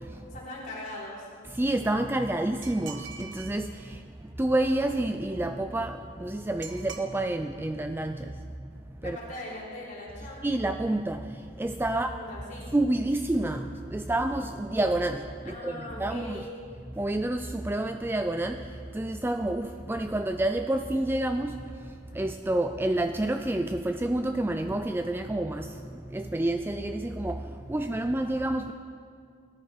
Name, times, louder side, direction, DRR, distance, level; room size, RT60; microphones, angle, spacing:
voice 1, 0.3-1.3 9.0-10.4 11.9-12.7 15.4-16.5, left 1 dB, 40° left, -6 dB, 4.0 m, -40 dB
voice 2, 1.5-4.0 4.4-8.3 9.0-9.2 10.4-12.1 12.7-16.4 17.0-18.7 18.9-21.6 22.1-25.8 26.1-27.4 27.7-28.7, right 1 dB, 10° right, 7 dB, 0.3 m, -29 dB
sound 1, 2.6-3.6 6.6-7.1, right 6 dB, 60° right, 1.1 m, -43 dB
18.5 x 13.0 x 4.5 m, 2.3 s
head